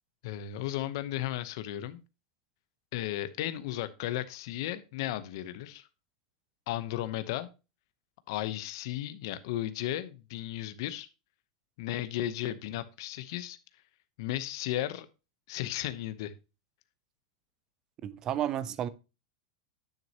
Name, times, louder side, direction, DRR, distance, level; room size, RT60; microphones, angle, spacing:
voice 1, 0.2-2.0 2.9-5.9 6.7-7.5 8.3-11.1 11.8-13.6 14.2-15.1 15.5-16.3, left 13 dB, 45° left, 0.8 m, -35 dB
voice 2, 18.0-18.9, right 11 dB, 20° right, 0.5 m, -32 dB
10.5 x 6.3 x 2.9 m
supercardioid pair, 180°, 3 cm